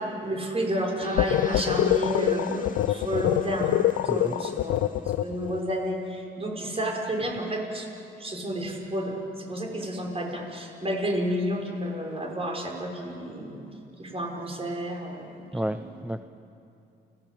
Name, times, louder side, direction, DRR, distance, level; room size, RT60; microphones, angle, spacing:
voice 1, 0.0-3.7 4.0-7.9 8.2-13.6 14.0-15.9, equal, 30° right, 0 dB, 6.3 m, -31 dB
sound 1, 1.0-5.9, left 4 dB, 40° left, 2.1 m, -41 dB
sound 2, 1.2-5.6, left 14 dB, 85° left, 0.6 m, -25 dB
voice 2, 15.5-16.2, right 1 dB, 5° right, 9 dB, 0.7 m, -31 dB
29.5 x 18.0 x 8.6 m, 2.7 s
cardioid pair, 90°, 20 cm